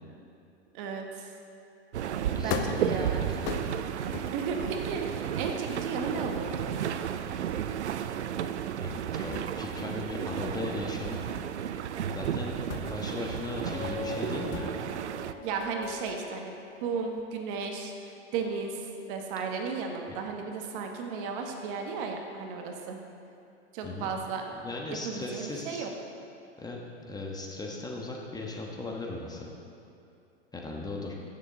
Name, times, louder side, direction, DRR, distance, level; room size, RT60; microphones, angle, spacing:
voice 1, 0.7-1.3 2.4-3.3 4.3-6.8 15.4-16.5 16.8-23.0 23.7-24.4 25.0-25.9, right 5 dB, 50° right, 3 dB, 1.4 m, -34 dB
sound 1, 1.9-15.3, right 9 dB, 85° right, 0.5 m, -33 dB
voice 2, 2.3-3.4 8.8-11.2 12.1-14.7 20.1-20.2 23.8-24.1 24.6-25.9 26.6-29.5 30.5-31.1, left 2 dB, 10° left, -1 dB, 1.2 m, -37 dB
sound 2, 2.5-9.0 9.3-16.5 16.8-17.2, left 8 dB, 45° left, 0.8 m, -42 dB
sound 3, 13.4-17.0, left 5 dB, 85° left, 0.7 m, -42 dB
15.0 x 7.0 x 3.9 m, 2.7 s
hypercardioid pair, 105°, 33 cm